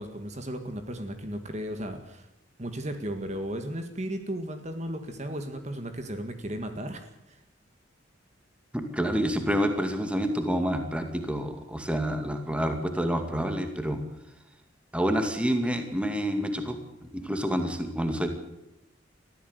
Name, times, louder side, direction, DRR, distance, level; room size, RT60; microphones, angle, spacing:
voice 1, 0.0-2.3 2.6-7.4, equal, 35° right, 7 dB, 1.9 m, -35 dB
voice 2, 8.7-14.0 14.9-18.3, equal, 5° right, 6 dB, 2.3 m, -28 dB
22.0 x 15.0 x 8.2 m, 0.86 s
head